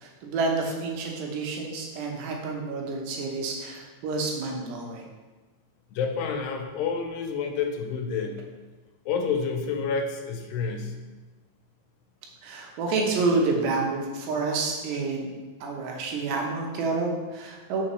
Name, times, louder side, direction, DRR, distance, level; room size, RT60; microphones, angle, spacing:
voice 1, 0.0-5.0 12.4-15.3 15.6-17.8, right 3 dB, 90° right, 0 dB, 3.2 m, -29 dB
voice 2, 5.9-8.4 9.1-10.9, left 5 dB, 85° left, 4 dB, 2.7 m, -29 dB
6.6 x 6.3 x 3.1 m, 1.3 s
omnidirectional pair, 4.8 m